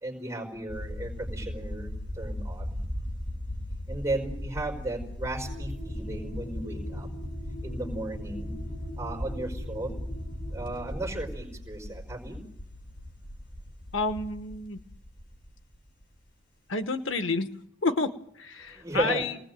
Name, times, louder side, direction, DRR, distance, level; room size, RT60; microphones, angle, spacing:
voice 1, 0.0-2.8 3.9-7.1 7.6-8.5 9.0-9.9 10.5-12.4 18.7-19.3, right 2 dB, 15° right, -1 dB, 4.8 m, -34 dB
sound 1, 0.7-16.3, left 1 dB, 45° left, 3.6 m, -39 dB
sound 2, 5.4-11.3, equal, 70° left, 5.8 m, -40 dB
voice 2, 13.9-14.8 16.7-17.5 17.8-19.4, left 3 dB, 90° left, 9 dB, 1.3 m, -29 dB
28.5 x 20.0 x 7.7 m, 0.72 s
head